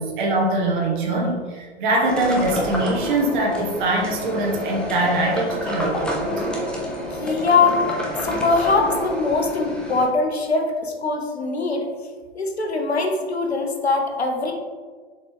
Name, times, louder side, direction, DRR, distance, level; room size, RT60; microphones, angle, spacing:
voice 1, 0.0-6.2, right 2 dB, 50° right, -1 dB, 1.2 m, -22 dB
sound 1, 2.1-10.1, equal, 5° left, 0.5 m, -28 dB
voice 2, 7.1-7.8 8.2-11.9 12.3-14.5, left 3 dB, 75° left, 3 dB, 1.1 m, -22 dB
6.7 x 4.1 x 3.4 m, 1.5 s
figure-of-eight pair, 105°, 32 cm